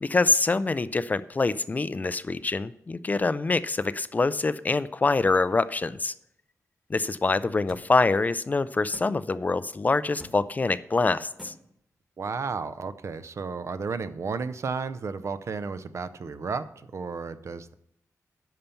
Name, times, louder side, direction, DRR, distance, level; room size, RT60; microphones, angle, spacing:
voice 1, 0.0-6.1 6.9-11.5, left 3 dB, 25° left, 15 dB, 0.3 m, -25 dB
sound 1, 7.7-7.9 8.9-9.1 10.2-10.4 11.4-11.6, equal, ahead, 1.2 m, -44 dB
voice 2, 12.2-17.7, right 5 dB, 55° right, 13 dB, 0.6 m, -33 dB
10.5 x 5.7 x 6.9 m, 0.75 s
wide cardioid pair, 165°, 6 cm